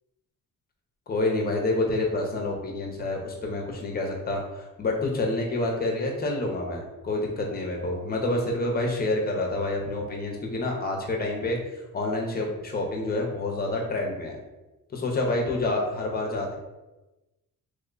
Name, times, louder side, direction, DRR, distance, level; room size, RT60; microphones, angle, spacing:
voice 1, 1.1-11.6 11.9-14.4 14.9-16.5, left 2 dB, 30° left, 0 dB, 0.6 m, -28 dB
3.0 x 2.2 x 3.7 m, 1.1 s
wide cardioid pair, 145°, 34 cm